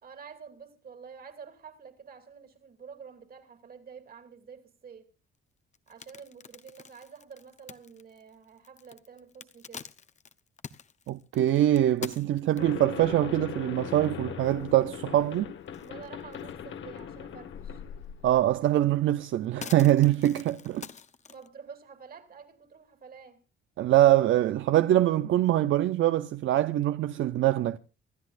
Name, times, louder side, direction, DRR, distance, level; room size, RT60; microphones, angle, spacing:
voice 1, 0.0-5.1 5.9-9.8 15.8-17.8 21.3-23.4, right 6 dB, 45° right, 2.8 m, -48 dB
sound 1, 5.7-12.9 13.5-13.6 14.0-14.1 14.4-15.3 15.7-16.6 17.0-17.1 18.4-18.5 18.9-21.5, left 6 dB, 35° left, 0.9 m, -46 dB
voice 2, 11.1-15.5 18.2-20.9 23.8-27.8, right 13 dB, 70° right, 0.7 m, -24 dB
sound 2, 12.6-18.6, left 8 dB, 65° left, 1.7 m, -40 dB
26.5 x 13.0 x 2.5 m
cardioid pair, 120°, 21 cm